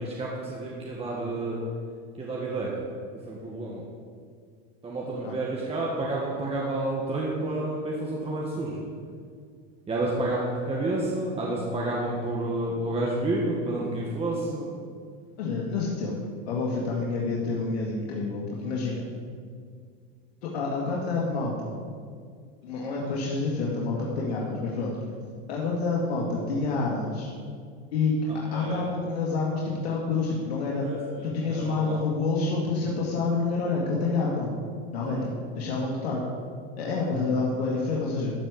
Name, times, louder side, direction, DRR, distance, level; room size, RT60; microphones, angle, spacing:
voice 1, 0.0-1.6 2.1-2.7 3.1-3.8 4.8-8.8 9.9-14.8 28.3-29.0 30.8-32.0 35.0-35.3, right 2 dB, 20° right, -4 dB, 1.7 m, -30 dB
voice 2, 15.4-16.2 16.5-19.1 20.4-21.7 22.6-24.9 25.5-27.3 27.9-28.1 28.5-30.9 31.2-34.5 34.9-35.3 35.6-36.2 36.8-38.3, left 3 dB, 85° left, -4 dB, 1.9 m, -28 dB
13.0 x 5.0 x 8.1 m, 2.1 s
supercardioid pair, 125°, 31 cm